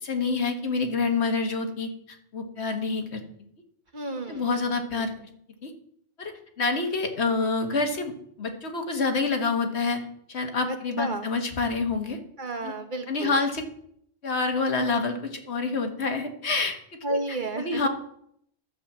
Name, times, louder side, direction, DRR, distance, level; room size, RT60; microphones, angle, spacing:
voice 1, 0.0-1.9 2.3-3.2 4.3-5.1 5.6-5.7 6.2-8.1 8.4-10.0 10.3-12.2 12.6-12.7 13.1-13.6 14.2-16.8 17.1-17.2 17.6-17.9, left 4 dB, 90° left, 4 dB, 1.7 m, -27 dB
voice 2, 3.9-4.5 4.9-5.0 10.7-11.3 12.4-13.4 17.0-17.9, right 2 dB, 50° right, 5 dB, 1.3 m, -32 dB
12.0 x 5.2 x 7.3 m, 0.69 s
omnidirectional pair, 1.1 m